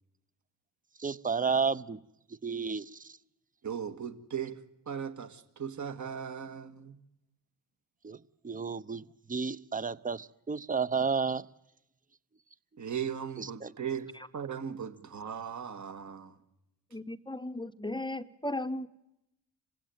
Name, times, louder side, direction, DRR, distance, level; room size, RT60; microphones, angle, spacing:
voice 1, 1.0-2.0 2.4-2.8 8.0-8.2 8.4-9.0 9.3-11.4 13.6-13.7, right 5 dB, 20° right, 0.8 m, -31 dB
voice 2, 3.6-4.6 4.9-7.0 12.8-16.4, right 8 dB, 40° right, 2.0 m, -38 dB
voice 3, 16.9-18.9, left 1 dB, 10° left, 0.9 m, -36 dB
26.5 x 16.0 x 9.3 m
hypercardioid pair, 50°, 43 cm